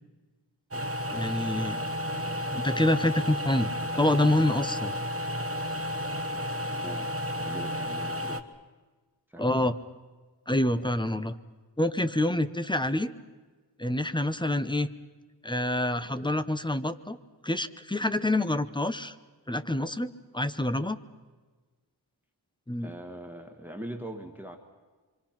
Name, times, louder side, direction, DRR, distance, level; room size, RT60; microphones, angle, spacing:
sound 1, 0.7-8.4, equal, 35° right, 1.2 m, -32 dB
voice 1, 1.1-1.8 2.1-3.7 4.0-5.0 9.4-9.8 10.5-11.4 11.8-13.1 13.8-14.9 15.4-17.2 17.4-19.1 19.5-21.0 22.7-22.9, left 1 dB, 10° left, 12 dB, 0.8 m, -27 dB
voice 2, 7.4-8.4 9.3-9.5 22.8-24.6, right 1 dB, 5° right, 4 dB, 1.5 m, -41 dB
27.0 x 24.0 x 5.9 m, 1.3 s
wide cardioid pair, 100°, 41 cm